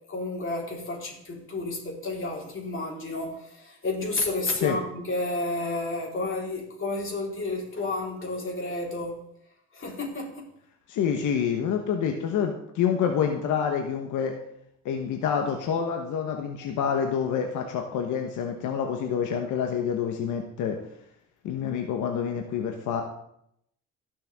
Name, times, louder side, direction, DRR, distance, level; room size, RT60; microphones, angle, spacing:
voice 1, 0.1-9.2 9.7-10.5 16.4-16.5, left 2 dB, 40° left, -2 dB, 4.2 m, -31 dB
voice 2, 10.9-14.3 14.8-20.8 21.4-23.0, left 7 dB, 90° left, 4 dB, 1.2 m, -27 dB
17.5 x 6.8 x 3.6 m, 0.73 s
cardioid pair, 90°, 30 cm